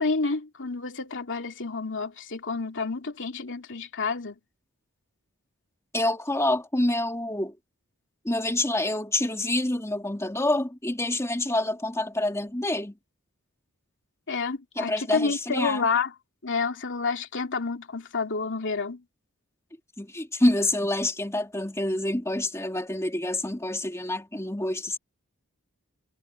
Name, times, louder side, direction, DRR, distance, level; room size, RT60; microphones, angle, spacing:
voice 1, 0.0-4.4 14.3-16.1 16.4-19.0, left 4 dB, 60° left, 2.9 m, -29 dB
voice 2, 5.9-7.5 8.2-12.9 14.8-15.9 20.0-25.0, left 1 dB, 15° left, 2.5 m, -27 dB
head